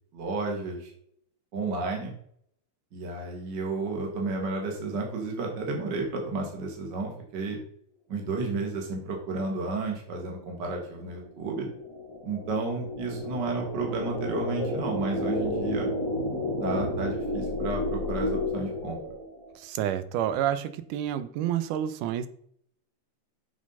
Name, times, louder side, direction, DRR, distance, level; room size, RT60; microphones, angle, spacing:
voice 1, 0.1-0.9 1.5-2.1 2.9-7.6 8.1-11.7 12.2-15.9 16.6-19.0, right 3 dB, 40° right, 1 dB, 2.1 m, -32 dB
sound 1, 10.6-19.5, left 1 dB, 10° left, 1.7 m, -32 dB
voice 2, 19.6-22.3, right 10 dB, 85° right, 13 dB, 2.2 m, -29 dB
7.3 x 6.5 x 5.4 m, 0.66 s
omnidirectional pair, 3.6 m